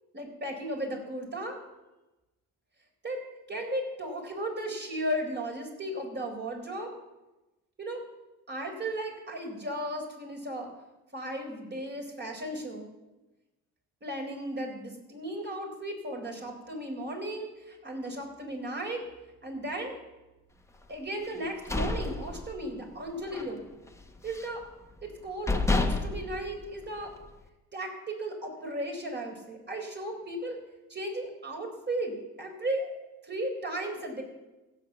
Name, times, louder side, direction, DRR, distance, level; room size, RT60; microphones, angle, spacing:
voice 1, 0.1-1.6 3.0-3.2 3.5-6.9 7.8-8.0 8.5-10.7 11.1-12.9 14.0-19.0 19.4-20.0 20.9-23.6 24.2-24.6 25.0-27.1 27.7-30.6 30.9-32.9 33.2-34.2, right 1 dB, 30° right, 2 dB, 4.3 m, -35 dB
sound 1, 21.3-22.9 23.3-23.5 23.9-24.6 25.1-25.2 25.5-27.3, left 2 dB, 10° left, 1.3 m, -30 dB
15.5 x 7.7 x 7.1 m, 1.0 s
supercardioid pair, 80°, 34 cm